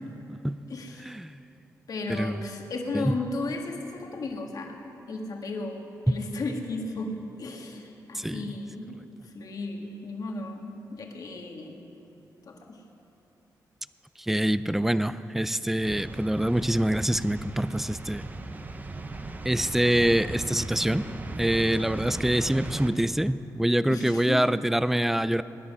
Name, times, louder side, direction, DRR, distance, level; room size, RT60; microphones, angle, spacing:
voice 1, 0.7-1.1 1.9-4.8 5.1-9.0 9.2-11.8 12.4-12.8 23.9-24.4, left 3 dB, 60° left, 2 dB, 1.6 m, -35 dB
voice 2, 2.1-2.4 2.9-3.1 8.1-8.4 14.2-18.3 19.4-21.1 21.4-25.4, right 1 dB, 5° right, 15 dB, 0.4 m, -25 dB
sound 1, 15.8-22.9, right 2 dB, 25° right, 0.7 m, -38 dB
20.0 x 10.5 x 5.5 m, 3.0 s
cardioid pair, 105°, 7 cm